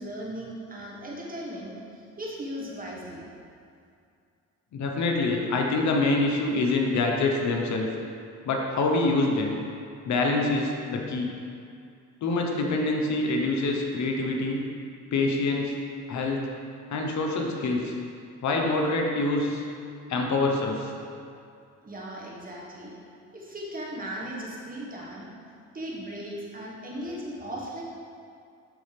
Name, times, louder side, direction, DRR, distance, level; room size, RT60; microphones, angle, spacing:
voice 1, 0.0-3.3 21.8-22.9 23.3-25.3 25.7-27.8, equal, 30° right, -4 dB, 1.6 m, -37 dB
voice 2, 4.7-7.9 8.4-9.6 10.0-11.4 12.2-14.6 15.1-15.8 16.1-16.5 16.9-17.9 18.4-19.6 20.1-20.9, left 2 dB, 65° left, 1 dB, 1.1 m, -25 dB
12.5 x 4.2 x 3.5 m, 2.4 s
cardioid pair, 90°, 30 cm